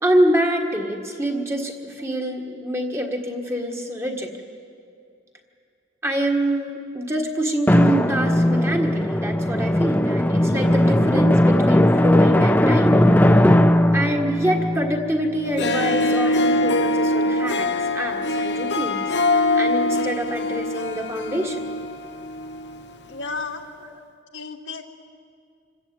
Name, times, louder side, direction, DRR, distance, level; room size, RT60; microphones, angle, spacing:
voice 1, 0.0-4.3 6.0-13.0 13.9-21.6 23.8-24.0, right 1 dB, 15° right, 2 dB, 1.6 m, -25 dB
Drum, 7.7-16.0, left 1 dB, 10° left, 0.6 m, -18 dB
Harp, 15.4-22.9, left 2 dB, 65° left, 0.9 m, -23 dB
voice 2, 23.1-23.7 24.3-24.8, left 4 dB, 80° left, 2 dB, 1.9 m, -32 dB
26.5 x 14.5 x 8.9 m, 2.4 s
head